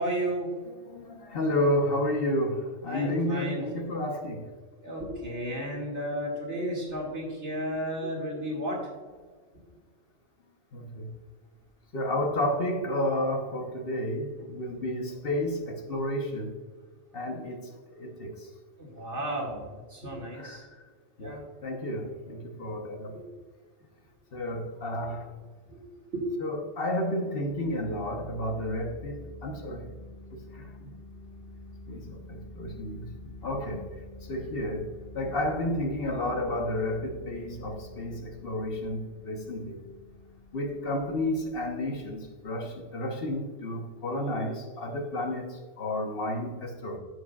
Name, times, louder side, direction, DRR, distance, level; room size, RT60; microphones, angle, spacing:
voice 1, 0.0-0.5 2.9-3.6 4.8-8.8 18.8-20.6 21.2-21.4 23.1-23.2 25.7-25.8 26.1-26.2 27.7-27.8, right 1 dB, 75° right, 2.6 m, -33 dB
voice 2, 0.6-4.5 8.4-8.5 10.7-11.1 11.9-16.5 17.1-17.7 18.0-18.5 20.3-20.7 21.2-23.2 24.3-25.3 26.4-29.9 30.5-30.9 31.9-33.9 34.3-34.9 35.1-39.8 40.5-47.0, left 1 dB, 55° left, 1.2 m, -31 dB
sound 1, 27.4-43.7, left 1 dB, 50° right, 2.2 m, -48 dB
9.9 x 7.8 x 2.4 m
omnidirectional pair, 1.2 m